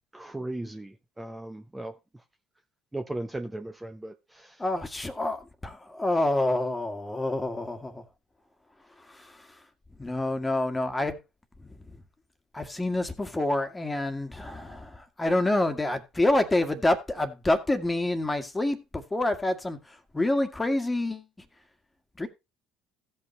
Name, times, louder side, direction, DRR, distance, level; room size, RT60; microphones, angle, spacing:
voice 1, 0.1-2.2 2.9-4.6, right 1 dB, 10° right, 0.9 m, -37 dB
voice 2, 4.6-8.0 9.1-9.5 10.0-11.2 11.9-12.0 12.5-21.3 22.2-22.3, left 1 dB, 15° left, 1.8 m, -27 dB
16.0 x 5.6 x 3.2 m
hypercardioid pair, 65°, 0 cm